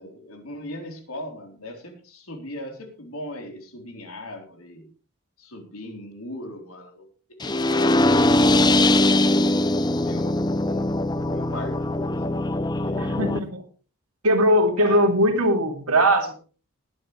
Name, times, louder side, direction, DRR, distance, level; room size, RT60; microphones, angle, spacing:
voice 1, 0.0-4.9 5.4-7.1 7.4-9.0 10.0-10.9 11.3-12.5 12.7-13.3 14.8-15.1, left 1 dB, 80° left, 4 dB, 3.9 m, -39 dB
sound 1, 7.4-13.4, left 1 dB, 20° left, 0.6 m, -21 dB
voice 2, 13.0-13.6 14.2-16.4, equal, 90° right, 4 dB, 2.9 m, -20 dB
19.5 x 10.0 x 3.3 m, 0.36 s
head